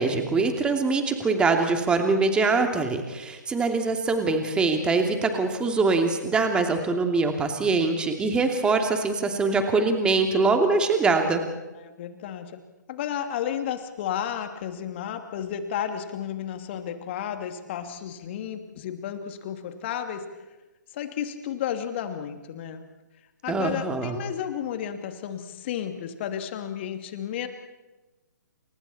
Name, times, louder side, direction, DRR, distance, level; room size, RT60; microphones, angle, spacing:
voice 1, 0.0-11.4 23.5-24.2, right 3 dB, 10° right, 5 dB, 2.8 m, -23 dB
voice 2, 11.7-12.6 12.9-20.2 20.9-22.8 23.4-27.5, left 9 dB, 40° left, 6 dB, 2.7 m, -32 dB
29.5 x 27.5 x 4.4 m, 1.1 s
figure-of-eight pair, 130°, 10 cm